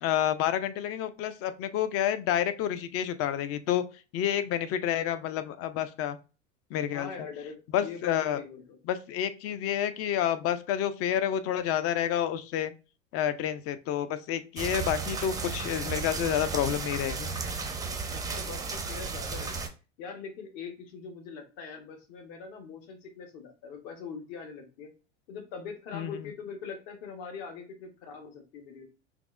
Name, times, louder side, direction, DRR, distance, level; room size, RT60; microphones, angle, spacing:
voice 1, 0.0-3.8 4.1-6.2 6.7-7.1 7.7-8.4 8.9-12.7 13.1-17.3 25.9-26.2, left 10 dB, 40° left, 12 dB, 0.5 m, -29 dB
voice 2, 6.9-8.8 18.1-19.6 20.0-24.9 25.3-28.8, left 5 dB, 60° left, 4 dB, 1.2 m, -42 dB
sound 1, 14.6-19.7, right 4 dB, 10° right, 0.5 m, -34 dB
5.9 x 2.0 x 2.4 m, 0.33 s
hypercardioid pair, 100°, 36 cm